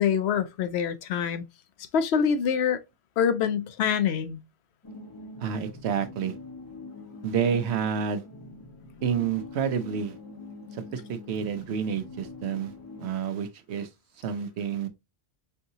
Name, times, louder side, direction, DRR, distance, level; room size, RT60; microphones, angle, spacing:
voice 1, 0.0-1.4 1.9-2.8 3.2-4.4, left 7 dB, 85° left, 0.9 m, -25 dB
sound 1, 4.8-13.1, left 3 dB, 25° left, 0.7 m, -44 dB
voice 2, 5.4-6.3 7.2-8.2 9.0-10.1 10.9-12.7 13.0-13.9 14.2-14.9, right 7 dB, 90° right, 0.9 m, -29 dB
4.6 x 2.7 x 2.7 m
omnidirectional pair, 1.1 m